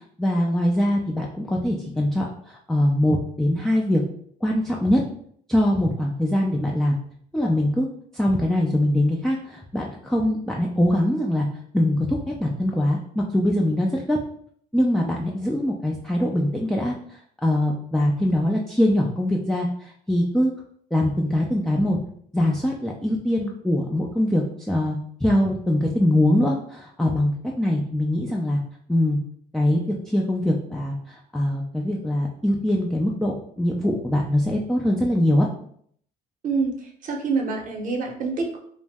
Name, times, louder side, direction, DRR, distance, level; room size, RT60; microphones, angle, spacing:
voice 1, 0.2-4.0 4.4-5.0 5.5-7.0 7.3-7.9 8.1-11.5 11.7-14.2 14.7-20.5 20.9-22.0 22.3-28.6 28.9-29.2 29.5-35.5, left 1 dB, 5° left, -2 dB, 0.3 m, -23 dB
voice 2, 37.0-38.6, right 4 dB, 50° right, 2 dB, 0.7 m, -26 dB
2.6 x 2.0 x 3.4 m, 0.62 s
cardioid pair, 110°, 17 cm